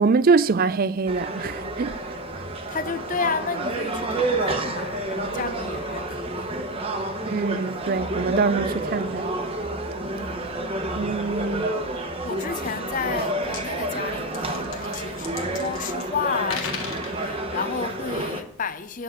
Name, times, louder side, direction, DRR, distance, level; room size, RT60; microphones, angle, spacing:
voice 1, 0.0-2.0 7.3-9.3 11.0-11.7, right 4 dB, 40° right, 0.4 m, -23 dB
sound 1, 1.1-18.4, right 2 dB, 25° right, 1.0 m, -29 dB
voice 2, 2.7-6.6 10.1-10.5 12.2-19.0, left 5 dB, 35° left, 0.5 m, -32 dB
sound 2, 13.4-13.6 14.2-16.1 16.4-17.2, left 5 dB, 65° left, 1.6 m, -35 dB
10.0 x 6.6 x 6.6 m
head